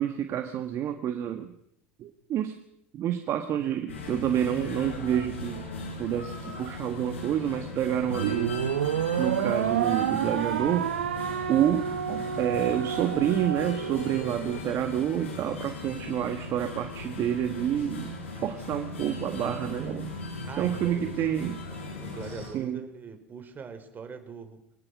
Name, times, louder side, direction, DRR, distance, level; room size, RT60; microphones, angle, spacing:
voice 1, 0.0-1.5 2.0-2.6 2.9-5.6 6.0-8.6 9.2-10.9 11.5-20.1 20.6-21.6 22.2-22.9, right 10 dB, 45° right, 7 dB, 1.8 m, -28 dB
sound 1, 3.9-22.5, left 3 dB, 85° left, 7.0 m, -38 dB
sound 2, 8.1-14.6, right 9 dB, 80° right, 1.2 m, -29 dB
voice 2, 20.5-21.1 22.0-24.6, right 5 dB, 30° right, 7 dB, 4.2 m, -42 dB
24.0 x 18.5 x 6.3 m, 0.73 s
hypercardioid pair, 75°, 6 cm